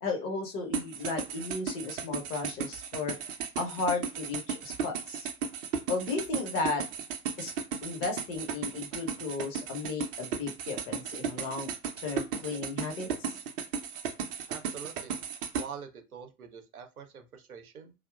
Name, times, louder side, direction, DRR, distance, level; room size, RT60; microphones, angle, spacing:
voice 1, 0.0-3.1 3.6-5.3 5.9-6.8 7.4-7.5 7.8-11.7 12.0-13.3, left 4 dB, 35° left, 3 dB, 0.7 m, -34 dB
sound 1, 0.7-15.7, right 6 dB, 40° right, 0.5 m, -35 dB
voice 2, 14.5-15.1 15.5-17.9, right 7 dB, 80° right, 5 dB, 0.7 m, -45 dB
2.8 x 2.1 x 2.2 m, 0.28 s
figure-of-eight pair, 85°, 43 cm